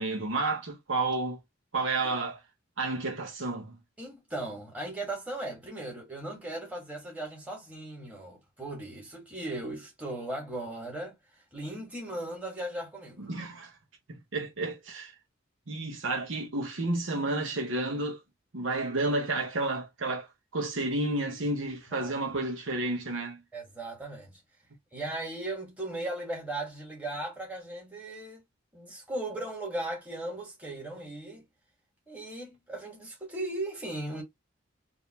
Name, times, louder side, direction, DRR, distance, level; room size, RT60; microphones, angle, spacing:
voice 1, 0.0-1.4 1.7-2.4 2.8-3.8 13.2-13.7 14.1-15.1 15.7-18.2 18.5-23.4, right 2 dB, 75° right, 1.1 m, -31 dB
voice 2, 4.0-11.2 11.5-13.3 21.9-22.1 23.5-24.4 24.9-28.4 28.7-31.4 32.1-34.2, right 1 dB, 5° right, 1.8 m, -37 dB
3.7 x 2.8 x 2.9 m
head